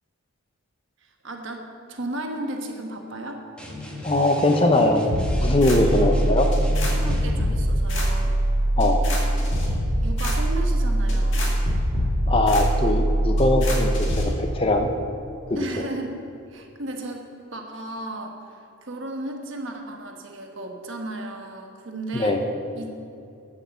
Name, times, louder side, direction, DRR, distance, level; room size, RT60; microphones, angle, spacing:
voice 1, 1.0-3.4 5.9-6.2 6.9-8.4 10.0-11.6 15.6-16.2 16.5-17.2 17.5-22.4 22.7-22.9, right 1 dB, 55° right, 2 dB, 1.2 m, -34 dB
sound 1, 3.6-7.4, left 1 dB, 5° left, 1.2 m, -36 dB
voice 2, 4.0-5.1 5.4-6.5 8.8-9.0 12.3-14.9 15.5-15.6 22.1-22.4, left 2 dB, 25° left, 5 dB, 0.6 m, -21 dB
sound 2, 5.1-14.2, right 1 dB, 55° left, 2.0 m, -22 dB
8.5 x 7.9 x 6.9 m, 2.8 s
head